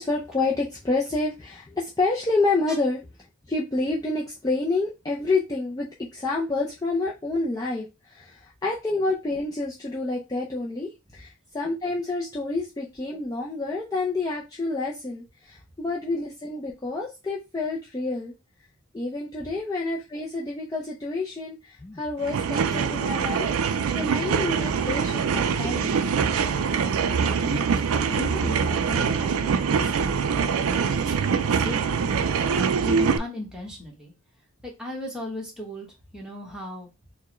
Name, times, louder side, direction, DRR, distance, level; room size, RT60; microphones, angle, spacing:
voice 1, 0.0-3.0 3.5-18.3 18.9-26.0, left 3 dB, 15° left, -3 dB, 0.5 m, -28 dB
sound 1, 22.2-33.2, right 6 dB, 75° right, 0.4 m, -24 dB
voice 2, 25.8-26.3 27.4-27.7 28.1-32.3 32.8-34.1 34.6-35.9 36.1-36.9, left 1 dB, 5° right, -2 dB, 1.2 m, -37 dB
4.5 x 2.2 x 3.0 m, 0.26 s
head